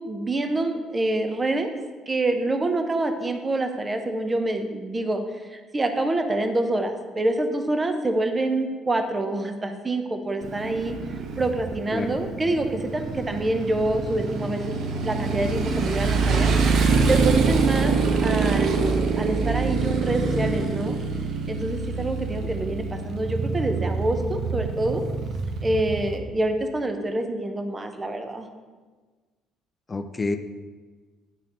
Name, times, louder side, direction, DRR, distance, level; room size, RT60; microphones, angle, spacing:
voice 1, 0.0-1.7 2.1-16.5 17.1-21.0 21.5-25.0 25.6-28.5, right 2 dB, 25° right, 6 dB, 0.8 m, -26 dB
Motorcycle, 10.4-26.2, right 4 dB, 65° right, 0.8 m, -25 dB
voice 2, 29.9-30.4, left 3 dB, 25° left, 8 dB, 0.5 m, -28 dB
9.8 x 4.0 x 4.4 m, 1.4 s
cardioid pair, 85°, 0 cm